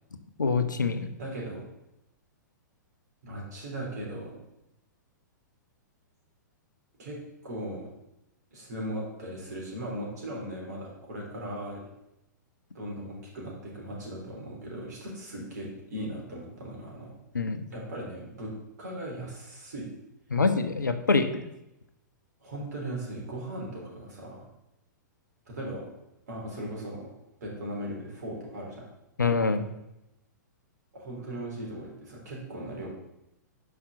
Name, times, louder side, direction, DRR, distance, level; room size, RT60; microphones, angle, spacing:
voice 1, 0.4-1.1 17.3-17.6 20.3-21.4 29.2-29.6, left 4 dB, 80° left, 9 dB, 0.8 m, -25 dB
voice 2, 1.2-1.6 3.2-4.4 7.0-7.9 8.5-11.8 12.7-17.2 17.7-19.9 22.4-24.4 25.5-25.9 26.3-27.1 27.4-28.9 30.9-32.9, right 1 dB, 60° right, -2 dB, 3.3 m, -38 dB
5.8 x 5.1 x 6.5 m, 0.89 s
figure-of-eight pair, 110°, 10 cm